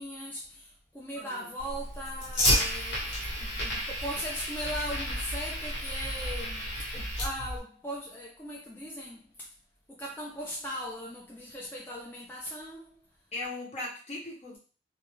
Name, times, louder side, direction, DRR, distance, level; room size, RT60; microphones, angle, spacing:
voice 1, 0.0-9.3 9.9-13.0, equal, 10° left, -4 dB, 0.4 m, -39 dB
voice 2, 1.2-1.5 3.0-3.3 13.3-14.6, left 2 dB, 40° left, -1 dB, 0.7 m, -39 dB
Fire, 1.6-7.6, equal, 80° left, 1.1 m, -31 dB
2.3 x 2.2 x 3.0 m, 0.37 s
head